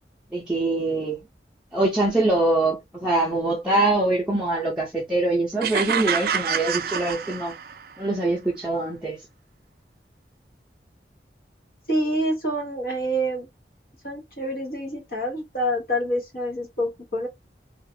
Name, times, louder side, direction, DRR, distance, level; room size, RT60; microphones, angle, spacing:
voice 1, 0.3-1.2 1.7-7.5 8.0-9.2, right 2 dB, 5° right, 0.6 m, -23 dB
sound 1, 5.6-7.9, right 7 dB, 55° right, 0.3 m, -27 dB
voice 2, 11.9-13.5 14.0-17.3, equal, 55° left, 1.2 m, -27 dB
2.4 x 2.4 x 2.7 m
head